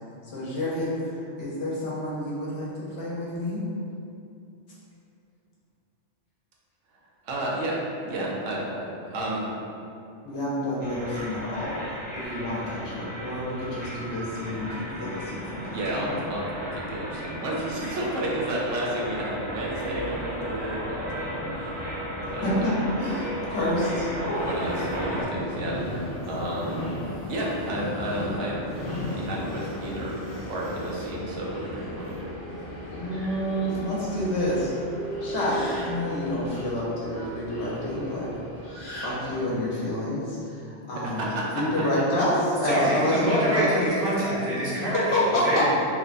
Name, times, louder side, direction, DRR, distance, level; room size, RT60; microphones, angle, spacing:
voice 1, 0.3-0.9 1.4-2.7 3.0-3.6 10.2-11.8 12.1-16.1 22.4-24.4 32.9-34.7 35.2-38.3 38.9-40.4 40.9-41.3 41.5-43.7 45.1-45.7, left 1 dB, 70° left, -7 dB, 1.0 m, -28 dB
voice 2, 7.2-7.8 8.0-9.5 15.7-22.0 22.3-22.6 24.5-25.8 26.2-26.9 27.3-28.7 29.1-32.3 40.9-42.0, right 1 dB, 85° right, -4 dB, 0.9 m, -32 dB
sound 1, 10.8-25.2, equal, 70° right, 1.4 m, -34 dB
Subway metro underground, 24.3-39.6, left 1 dB, 50° left, 0.8 m, -35 dB
voice 3, 42.6-45.7, right 1 dB, 50° right, -8 dB, 0.8 m, -25 dB
3.1 x 2.1 x 2.4 m, 2.6 s
omnidirectional pair, 1.2 m